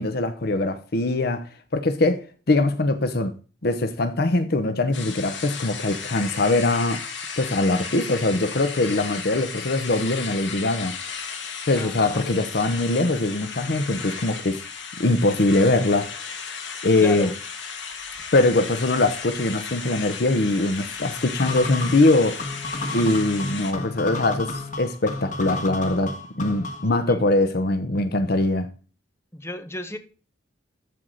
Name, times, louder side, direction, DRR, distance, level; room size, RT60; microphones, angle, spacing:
voice 1, 0.0-1.5 1.7-7.0 7.4-11.0 11.7-14.6 15.0-16.2 16.8-17.3 18.3-22.4 22.9-28.7, left 2 dB, 60° left, 0.8 m, -22 dB
sound 1, 4.9-23.7, left 6 dB, 85° left, 2.0 m, -35 dB
voice 2, 11.7-12.2 17.0-17.3 27.1-27.3 29.3-30.0, left 1 dB, 15° left, 1.2 m, -33 dB
sound 2, 21.4-27.0, left 2 dB, 45° left, 1.6 m, -32 dB
13.5 x 4.7 x 3.9 m
head